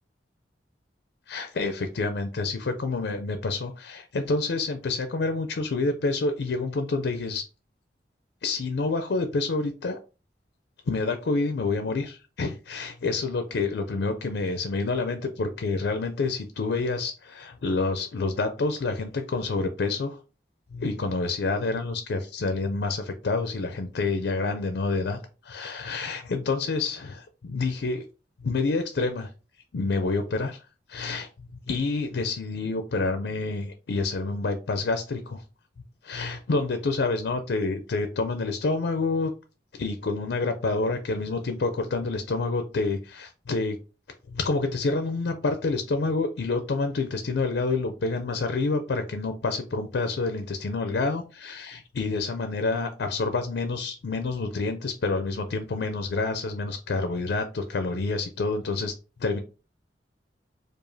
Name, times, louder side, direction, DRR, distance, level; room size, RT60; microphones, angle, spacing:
voice 1, 1.3-7.4 8.4-10.0 10.9-20.2 20.7-28.0 28.4-29.3 29.7-30.6 30.9-35.4 36.0-39.3 39.7-43.8 44.3-58.9 59.2-59.4, left 3 dB, 75° left, 8 dB, 0.4 m, -28 dB
4.8 x 2.4 x 2.7 m, 0.34 s
head